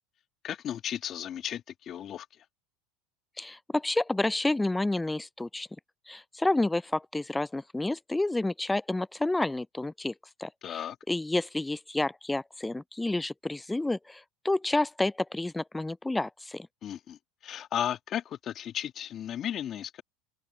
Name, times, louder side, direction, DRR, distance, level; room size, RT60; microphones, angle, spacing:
voice 1, 0.4-2.4 10.6-11.0 16.8-20.0, left 10 dB, 40° left, 2.0 m, -35 dB
voice 2, 3.4-5.7 6.1-10.1 10.4-16.7, left 2 dB, 10° left, 0.4 m, -30 dB
open air
hypercardioid pair, 85°, 0 cm